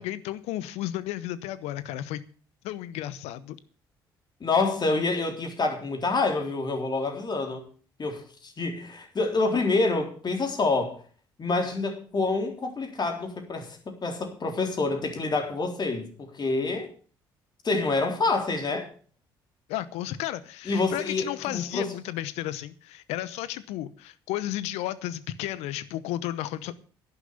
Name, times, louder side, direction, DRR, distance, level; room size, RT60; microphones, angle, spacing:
voice 1, 0.0-2.2 2.6-3.6 19.7-26.8, left 13 dB, 65° left, 0.9 m, -33 dB
voice 2, 4.4-7.6 8.0-11.0 11.4-16.9 17.6-18.9 20.7-21.9, left 3 dB, 40° left, 3.7 m, -27 dB
11.0 x 11.0 x 6.9 m
figure-of-eight pair, 50°, 12 cm